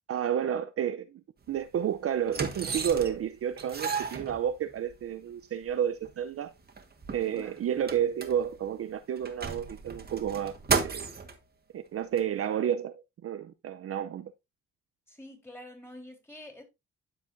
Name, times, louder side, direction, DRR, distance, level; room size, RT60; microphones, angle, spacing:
voice 1, 0.1-1.2 1.5-6.5 7.1-10.5 10.8-11.0 11.7-14.3, right 9 dB, 50° right, 0.6 m, -31 dB
sound 1, 1.4-1.6 2.3-3.3 3.6-4.9 5.7-5.8 6.0-6.1 6.6-8.7 9.2-11.3 12.2-12.3, right 5 dB, 30° right, 1.5 m, -34 dB
voice 2, 7.3-7.6 15.1-16.6, left 1 dB, 10° left, 3.4 m, -47 dB
12.5 x 4.9 x 2.6 m
cardioid pair, 90°, 30 cm